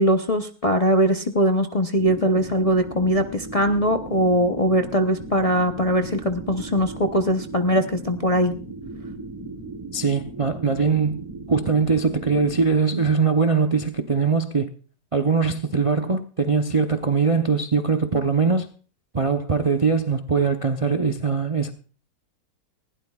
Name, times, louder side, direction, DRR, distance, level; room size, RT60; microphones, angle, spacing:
voice 1, 0.0-8.5, equal, 35° left, 0.6 m, -21 dB
sound 1, 2.0-12.7, right 3 dB, 20° right, 1.2 m, -37 dB
voice 2, 9.9-11.2 11.5-14.7 15.1-18.7 19.1-21.7, right 5 dB, 35° right, 0.5 m, -21 dB
19.5 x 16.0 x 2.4 m
omnidirectional pair, 1.7 m